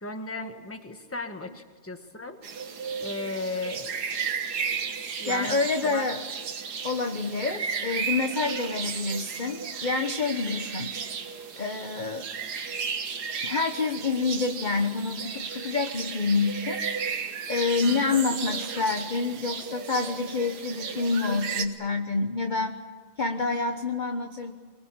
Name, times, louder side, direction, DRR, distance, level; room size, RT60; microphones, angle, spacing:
voice 1, 0.0-2.4 3.0-4.1 5.2-6.1 17.8-18.4, left 2 dB, 10° left, 6 dB, 1.3 m, -36 dB
sound 1, 2.4-21.7, right 6 dB, 60° right, 1.9 m, -34 dB
voice 2, 5.3-6.2 6.8-10.9 11.6-12.3 13.4-16.8 17.5-22.8 23.2-24.5, left 4 dB, 30° left, 6 dB, 0.9 m, -27 dB
24.0 x 21.5 x 8.8 m, 1.5 s
omnidirectional pair, 2.1 m